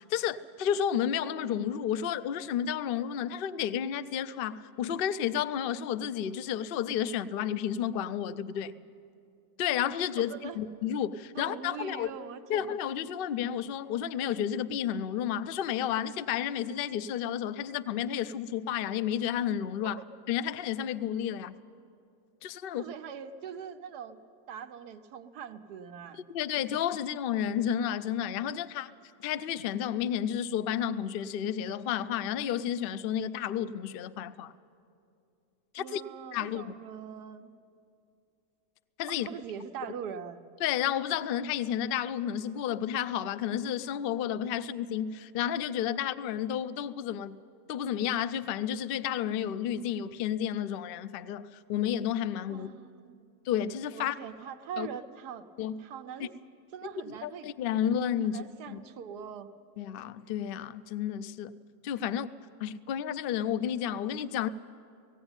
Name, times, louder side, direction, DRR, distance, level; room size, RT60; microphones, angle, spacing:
voice 1, 0.0-8.7 9.6-12.1 12.5-20.0 20.3-21.5 22.4-22.8 26.1-28.9 29.2-34.5 35.7-36.0 36.3-36.7 39.0-39.3 40.6-47.4 47.7-52.7 53.5-54.2 54.8-54.9 55.6-55.8 56.2-56.3 57.1-58.8 59.8-61.5 61.8-62.3 62.6-64.5, left 9 dB, 80° left, 14 dB, 0.5 m, -31 dB
voice 2, 10.2-10.6 11.3-12.8 19.8-20.0 22.7-24.2 24.5-26.2 35.8-37.5 39.1-40.4 52.5-53.3 53.9-55.5 55.8-56.3 56.7-57.5 58.2-59.5, right 7 dB, 90° right, 8 dB, 1.4 m, -42 dB
17.5 x 17.0 x 8.9 m, 2.5 s
omnidirectional pair, 1.7 m